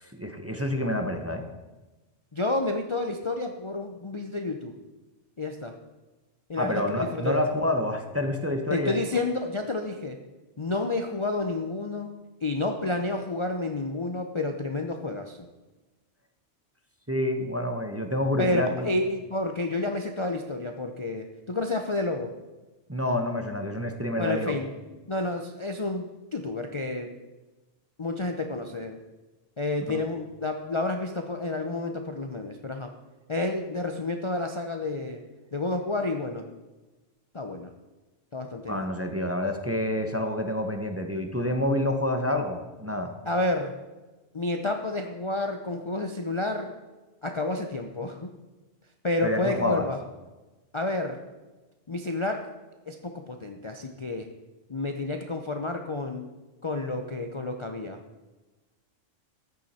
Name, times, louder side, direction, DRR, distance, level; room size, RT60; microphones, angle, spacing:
voice 1, 0.0-1.4 6.6-8.9 17.1-18.9 22.9-24.5 29.9-30.0 38.7-43.1 49.2-49.9, left 1 dB, 15° right, 5 dB, 0.8 m, -28 dB
voice 2, 2.3-4.7 5.4-5.8 6.5-7.4 8.7-10.2 10.6-12.1 12.4-15.5 18.4-22.3 24.2-24.7 25.1-27.2 28.0-29.0 29.6-32.9 33.3-35.2 35.5-36.5 37.3-37.7 38.3-38.9 43.2-43.7 44.3-46.7 47.2-48.2 49.0-50.0 50.7-51.2 51.9-52.5 52.9-54.3 54.7-56.3 56.6-58.0, left 2 dB, 30° left, 4 dB, 0.6 m, -30 dB
14.0 x 9.4 x 4.3 m, 1.2 s
omnidirectional pair, 1.3 m